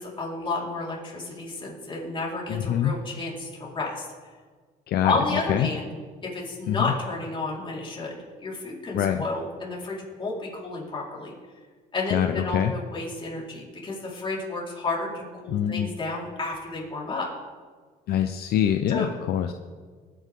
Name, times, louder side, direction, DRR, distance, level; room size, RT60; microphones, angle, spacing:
voice 1, 0.0-4.1 5.0-5.9 6.2-8.1 8.4-11.3 11.9-17.3 18.9-19.1, left 3 dB, 30° left, -5 dB, 4.6 m, -31 dB
voice 2, 2.5-2.9 4.9-5.1 5.5-5.7 6.7-6.9 8.9-9.2 12.1-12.7 15.5-15.9 18.1-19.5, left 10 dB, 65° left, 6 dB, 0.7 m, -24 dB
20.5 x 9.5 x 3.8 m, 1.5 s
cardioid pair, 110°, 17 cm